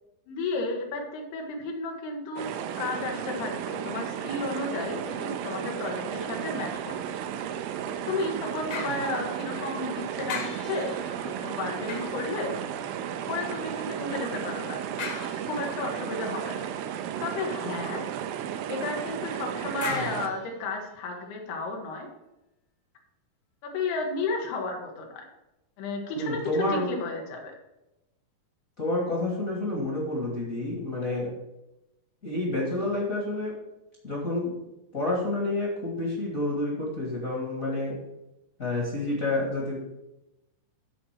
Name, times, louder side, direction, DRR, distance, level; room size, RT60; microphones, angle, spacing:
voice 1, 0.3-7.0 8.1-11.1 11.4-12.6 13.3-15.0 15.4-16.7 17.2-18.0 18.7-22.1 23.6-25.2 25.8-27.5, left 3 dB, 90° left, 1 dB, 3.4 m, -33 dB
sound 1, 2.4-20.3, right 9 dB, 80° right, 2.3 m, -34 dB
sound 2, 8.7-9.9 10.3-13.1 15.0-15.9 19.8-21.3 21.8-21.9, left 5 dB, 55° left, 1.8 m, -40 dB
voice 2, 26.2-26.9 28.8-31.3 32.2-33.5 34.0-34.5 34.9-38.0 38.6-39.8, left 2 dB, 35° left, -3 dB, 1.3 m, -29 dB
10.0 x 4.2 x 7.3 m, 0.94 s
omnidirectional pair, 4.5 m